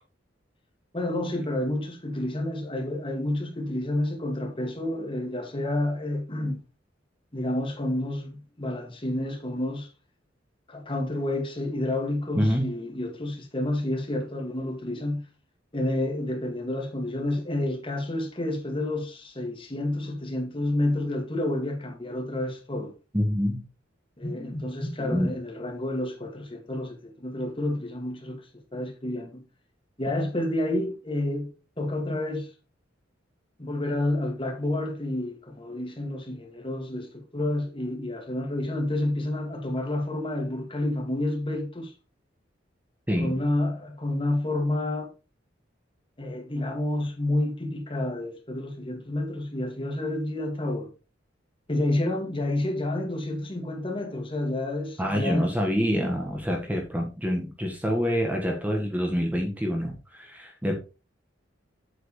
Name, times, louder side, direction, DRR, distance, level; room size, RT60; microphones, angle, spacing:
voice 1, 0.9-6.6 7.3-9.9 10.7-15.3 15.7-22.9 24.2-28.4 28.7-29.4 30.0-32.5 33.6-41.9 43.2-45.1 46.2-50.9 51.7-55.5, left 1 dB, 30° left, 2.1 m, -29 dB
voice 2, 12.3-12.7 23.1-23.6 25.1-25.3 43.1-43.4 55.0-60.8, equal, 10° right, 1.4 m, -26 dB
8.1 x 7.8 x 3.2 m
head